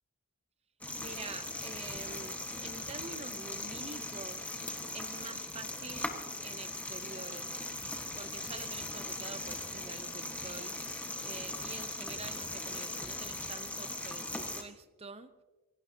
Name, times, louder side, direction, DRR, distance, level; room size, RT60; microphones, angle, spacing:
sound 1, 0.8-14.6, left 2 dB, 5° left, 1.3 m, -39 dB
voice 1, 1.0-6.1 6.4-7.5 8.2-10.8 11.2-15.3, right 4 dB, 30° right, 11 dB, 0.7 m, -47 dB
26.0 x 17.5 x 2.8 m, 1.2 s
head